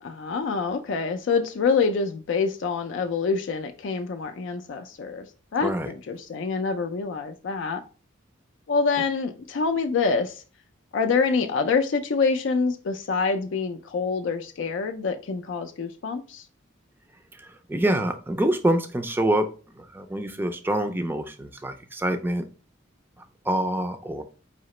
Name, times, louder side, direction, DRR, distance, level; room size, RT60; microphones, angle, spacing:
voice 1, 0.0-5.3 5.5-7.8 8.7-10.4 10.9-16.4, left 4 dB, 65° left, 0.4 m, -26 dB
voice 2, 17.4-19.5 19.8-22.5 23.5-24.2, right 1 dB, 10° right, 0.4 m, -26 dB
4.9 x 2.8 x 3.0 m
head